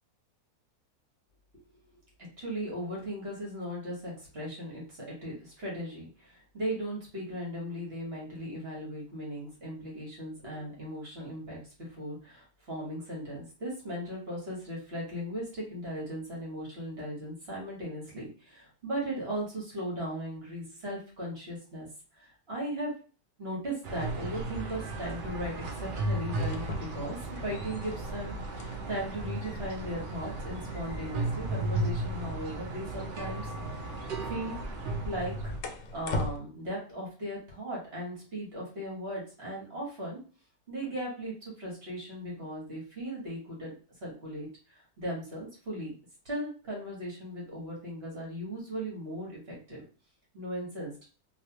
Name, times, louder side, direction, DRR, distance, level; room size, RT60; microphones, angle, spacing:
voice 1, 2.2-21.9 22.2-22.9 23.4-33.5 34.0-34.6 35.0-35.5 35.9-40.2 40.7-43.7 44.0-45.9 46.2-49.8 50.3-50.9, equal, 45° right, -4 dB, 1.4 m, -37 dB
sound 1, 23.8-35.6, right 2 dB, 75° right, 0.4 m, -35 dB
sound 2, 26.3-36.4, left 2 dB, 70° left, 0.8 m, -42 dB
3.1 x 2.6 x 2.9 m, 0.38 s
omnidirectional pair, 1.7 m